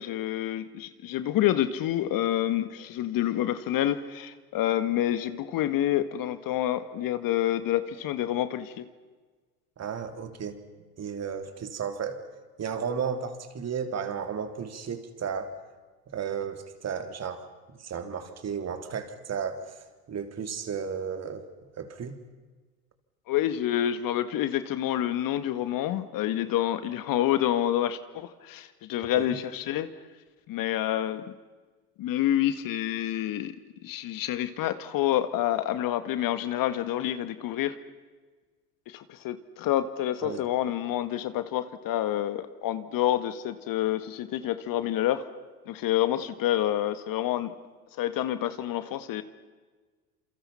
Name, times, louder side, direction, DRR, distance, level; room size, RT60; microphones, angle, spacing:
voice 1, 0.0-8.9 23.3-29.9 30.5-31.2 32.0-33.5 33.8-37.8 38.9-45.2 45.7-47.5 47.9-49.2, left 12 dB, 45° left, 11 dB, 2.0 m, -28 dB
voice 2, 9.8-10.6 11.0-12.2 12.6-15.6 16.1-17.5 17.8-21.4 21.8-22.2 29.2-29.3 40.2-40.4, right 6 dB, 35° right, 7 dB, 3.6 m, -34 dB
29.5 x 28.0 x 5.9 m, 1.4 s
hypercardioid pair, 80°, 47 cm